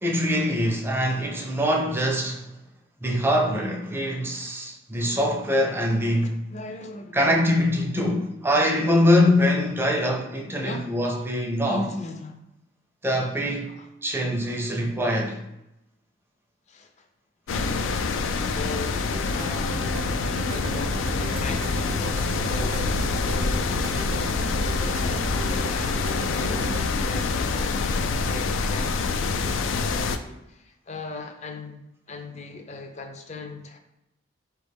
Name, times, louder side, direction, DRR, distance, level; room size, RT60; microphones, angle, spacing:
voice 1, 0.0-2.5 3.0-6.5 7.1-11.9 13.0-13.7 14.0-15.4, left 1 dB, 10° right, 0.5 m, -23 dB
voice 2, 6.2-7.4 8.7-9.2 10.5-10.9 11.7-12.4 13.7-13.9 16.7-17.1 17.5-17.9 18.5-19.8 20.2-29.0 29.7-31.8 32.1-33.8, left 2 dB, 35° left, 0.5 m, -39 dB
sound 1, 17.5-30.2, left 4 dB, 90° left, 0.4 m, -26 dB
sound 2, 19.1-26.9, right 2 dB, 70° right, 0.6 m, -35 dB
4.4 x 3.1 x 3.4 m
head